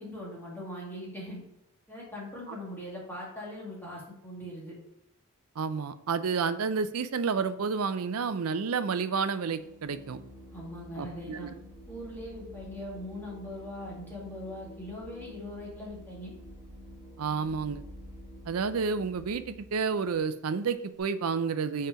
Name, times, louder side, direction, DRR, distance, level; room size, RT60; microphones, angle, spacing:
voice 1, 0.0-1.4 1.9-4.8 10.5-11.5 11.9-16.3, left 1 dB, 10° left, -5 dB, 2.0 m, -41 dB
voice 2, 5.6-10.2 11.0-11.5 17.2-17.8 18.4-21.9, right 5 dB, 85° right, 12 dB, 0.5 m, -30 dB
Organ, 9.5-19.8, equal, 15° right, 2.2 m, -49 dB
5.6 x 4.3 x 5.0 m, 0.81 s
head